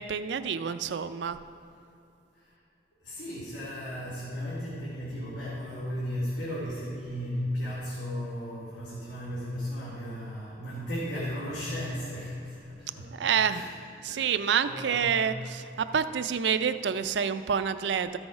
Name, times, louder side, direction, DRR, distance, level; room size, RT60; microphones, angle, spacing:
voice 1, 0.0-1.4 13.2-13.6 14.0-18.2, right 7 dB, 75° right, 11 dB, 0.4 m, -28 dB
voice 2, 3.0-13.2 13.5-14.3 14.6-15.2, equal, 85° left, -8 dB, 2.3 m, -35 dB
13.5 x 6.2 x 4.9 m, 2.8 s
head